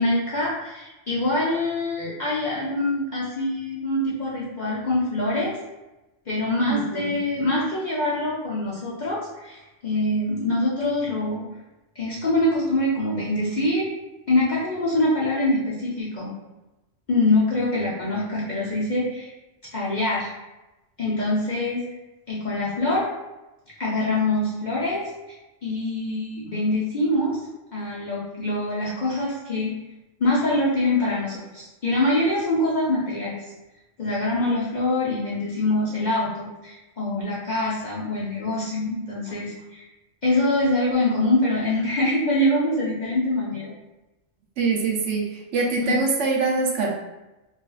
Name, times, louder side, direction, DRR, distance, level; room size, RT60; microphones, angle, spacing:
voice 1, 0.0-5.6 6.3-11.4 12.0-13.9 14.3-16.3 17.1-19.3 19.7-20.3 21.0-21.8 22.3-23.1 23.8-25.1 25.6-27.4 27.7-29.7 30.2-33.4 34.0-39.8 40.2-43.7 45.8-46.0, left 1 dB, 50° left, -7 dB, 0.6 m, -24 dB
voice 2, 6.7-7.2 44.6-46.9, right 4 dB, 75° right, -1 dB, 0.9 m, -24 dB
2.7 x 2.4 x 2.3 m, 1.0 s
omnidirectional pair, 1.3 m